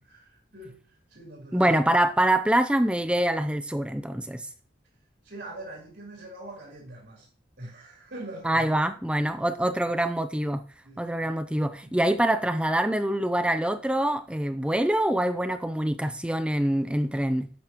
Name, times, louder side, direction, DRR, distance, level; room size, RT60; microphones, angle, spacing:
voice 1, 0.0-1.7 5.2-7.3 7.6-8.8 10.8-11.3 11.8-12.1, right 1 dB, 60° right, 3.8 m, -43 dB
voice 2, 1.5-4.5 8.4-10.6 11.0-17.5, right 1 dB, 5° right, 0.5 m, -25 dB
11.5 x 8.4 x 3.0 m
head